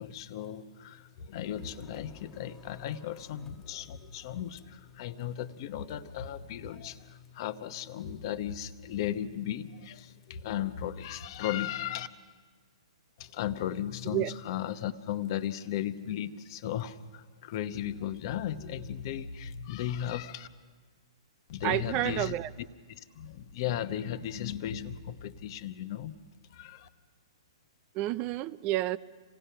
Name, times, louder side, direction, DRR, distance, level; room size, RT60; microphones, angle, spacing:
voice 1, 0.0-12.1 13.2-20.5 21.5-22.7 23.0-26.2 26.5-26.9, left 10 dB, 45° left, 10 dB, 1.0 m, -36 dB
sound 1, 1.4-8.3, left 4 dB, 15° left, 1.7 m, -59 dB
voice 2, 21.6-22.5 27.9-29.0, right 15 dB, 30° right, 18 dB, 0.5 m, -30 dB
27.0 x 17.0 x 5.7 m, 1.4 s
hypercardioid pair, 135°, 3 cm